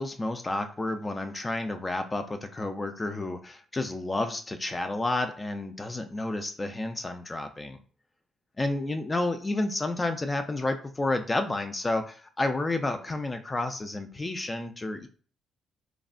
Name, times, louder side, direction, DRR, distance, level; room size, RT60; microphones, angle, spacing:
voice 1, 0.0-7.8 8.6-15.1, left 2 dB, 25° left, 6 dB, 0.3 m, -30 dB
3.2 x 2.1 x 2.4 m, 0.40 s
cardioid pair, 90°, 0 cm